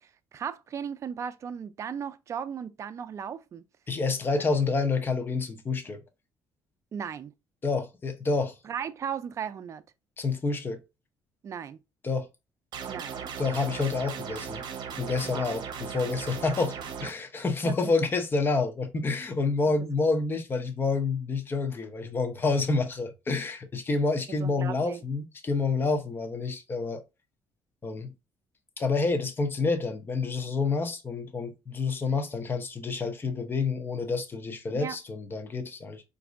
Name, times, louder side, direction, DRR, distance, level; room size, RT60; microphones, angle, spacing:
voice 1, 0.0-3.6 6.9-7.3 8.6-9.8 11.4-11.8 12.9-13.2 15.2-15.5 17.6-17.9 19.6-19.7 24.4-25.0 34.7-35.0, right 7 dB, 40° right, 0.4 m, -36 dB
voice 2, 3.9-6.0 7.6-8.5 10.2-10.8 12.0-12.3 13.4-14.6 15.0-27.0 27.8-28.1 28.8-36.0, left 3 dB, 25° left, 0.7 m, -28 dB
sound 1, 12.7-17.1, right 7 dB, 60° right, 0.8 m, -37 dB
4.1 x 2.6 x 2.4 m
cardioid pair, 115°, 8 cm